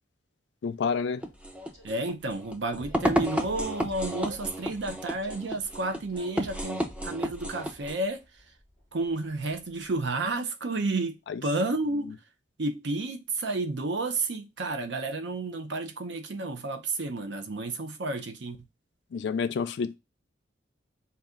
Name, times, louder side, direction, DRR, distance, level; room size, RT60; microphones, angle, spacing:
voice 1, 0.6-1.2 11.3-11.4 19.1-20.0, left 5 dB, 70° left, 0.3 m, -29 dB
sound 1, 1.2-7.9, equal, 5° right, 0.3 m, -32 dB
Train, 1.5-10.1, left 1 dB, 35° right, 2.5 m, -53 dB
voice 2, 1.8-8.2 8.9-11.2 11.4-12.1 12.6-18.6, right 2 dB, 75° right, 0.6 m, -31 dB
4.0 x 2.3 x 3.6 m
head